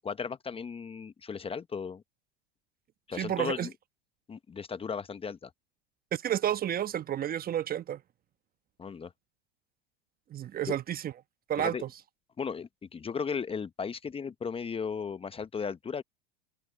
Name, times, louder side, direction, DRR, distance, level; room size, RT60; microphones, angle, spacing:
voice 1, 0.0-2.0 3.1-3.7 4.3-5.5 8.8-9.1 10.7-10.8 11.6-11.8 12.4-16.0, left 6 dB, 20° left, 1.1 m, -36 dB
voice 2, 3.1-3.7 6.1-8.0 10.3-11.1 11.5-11.9, right 10 dB, 30° right, 1.2 m, -31 dB
open air
hypercardioid pair, 95°, 29 cm